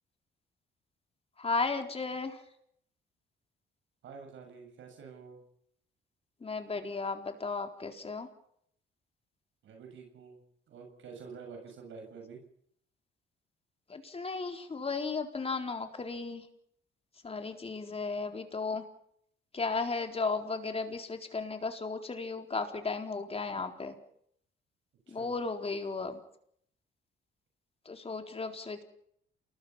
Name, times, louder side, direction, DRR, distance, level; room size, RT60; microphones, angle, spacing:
voice 1, 1.4-2.4 6.4-8.3 13.9-16.5 17.2-18.8 19.5-23.9 25.1-26.2 27.9-28.8, left 4 dB, 30° left, 5 dB, 4.2 m, -35 dB
voice 2, 4.0-5.4 9.6-10.4 10.7-12.4 25.1-25.3, right 5 dB, 75° right, 3 dB, 6.8 m, -48 dB
28.5 x 20.5 x 5.8 m, 0.69 s
cardioid pair, 90°, 20 cm